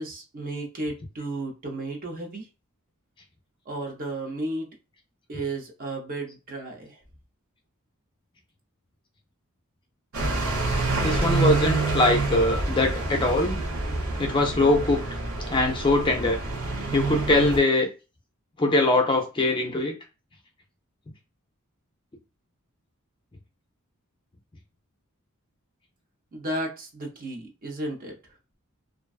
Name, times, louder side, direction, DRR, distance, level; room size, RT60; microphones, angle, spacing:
voice 1, 0.0-2.5 3.7-4.7 5.3-7.0 26.3-28.2, right 2 dB, 40° right, 2 dB, 0.6 m, -33 dB
sound 1, 10.1-17.6, right 3 dB, 75° right, 0.9 m, -27 dB
voice 2, 11.0-13.6 14.2-15.0 15.5-16.4 16.9-17.9 18.6-19.9, left 2 dB, 25° left, 3 dB, 0.4 m, -22 dB
2.5 x 2.2 x 2.3 m, 0.30 s
head